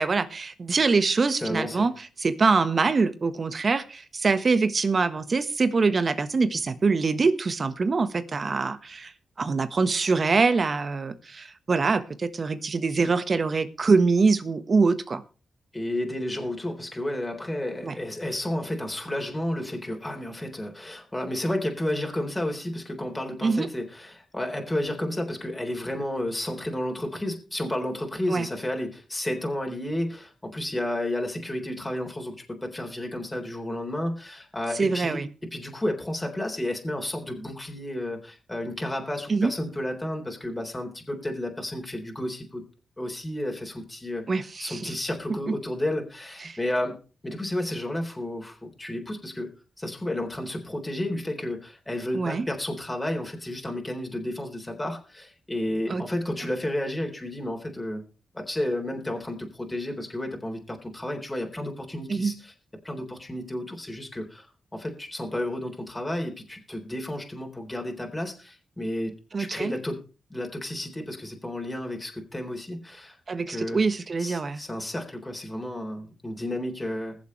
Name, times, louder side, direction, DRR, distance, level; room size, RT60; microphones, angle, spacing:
voice 1, 0.0-1.9 2.2-9.1 9.4-15.2 17.8-17.9 23.4-23.7 28.3-28.5 34.7-35.3 39.3-39.5 44.3-44.9 45.5-45.6 46.4-46.6 52.1-52.5 55.9-56.0 62.1-62.3 69.3-69.7 73.3-74.6, right 4 dB, 50° right, 12 dB, 1.3 m, -24 dB
voice 2, 1.4-1.9 15.7-35.2 35.5-42.6 43.0-47.0 47.2-49.5 49.8-58.0 58.3-62.5 62.8-64.5 64.7-70.0 70.3-73.2 73.5-73.8 74.2-77.2, left 1 dB, 15° left, 2 dB, 3.8 m, -32 dB
21.0 x 7.4 x 3.3 m, 0.35 s
supercardioid pair, 50°, 0 cm